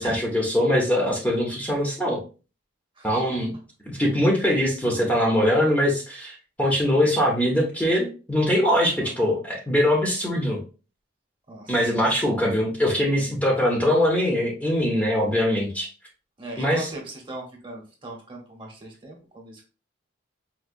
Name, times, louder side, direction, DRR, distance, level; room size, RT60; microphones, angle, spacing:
voice 1, 0.0-2.2 3.0-3.5 4.0-10.6 11.7-15.9 16.6-16.9, equal, 10° left, -2 dB, 0.7 m, -22 dB
voice 2, 9.0-9.3 11.5-11.9 16.4-19.6, right 2 dB, 25° right, 0 dB, 0.9 m, -39 dB
4.5 x 2.2 x 2.4 m, 0.35 s
head